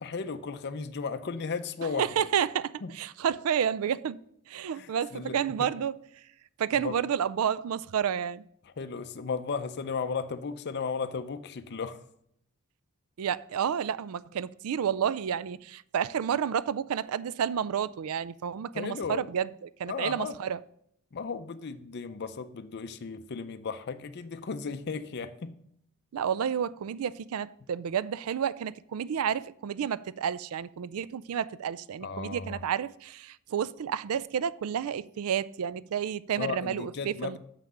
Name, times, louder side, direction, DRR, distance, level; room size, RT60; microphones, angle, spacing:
voice 1, 0.0-2.1 2.8-2.9 4.7-5.7 6.7-7.0 8.6-12.0 18.7-19.2 19.9-20.4 21.1-25.6 32.0-32.6 36.4-37.4, left 5 dB, 50° left, 0.5 m, -35 dB
voice 2, 2.0-4.2 4.5-5.9 6.6-8.4 13.2-20.6 26.1-37.4, right 8 dB, 75° right, 0.4 m, -30 dB
6.6 x 5.8 x 6.2 m
head